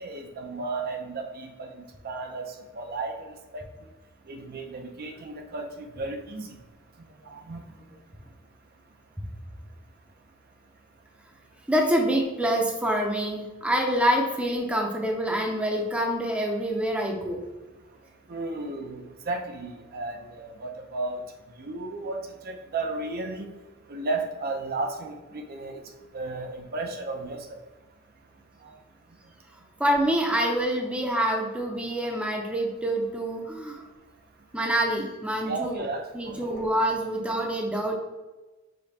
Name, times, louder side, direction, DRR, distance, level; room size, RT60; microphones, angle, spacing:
voice 1, 0.0-3.6 4.3-6.6 7.2-7.8 18.3-21.3 21.6-23.5 23.9-27.6 28.6-28.8 35.5-36.7, right 3 dB, 50° right, 4 dB, 0.5 m, -34 dB
voice 2, 11.7-17.4 29.8-33.8 34.5-35.8 36.1-37.9, right 1 dB, 5° right, 1 dB, 0.6 m, -26 dB
5.1 x 2.2 x 4.2 m, 1.2 s
head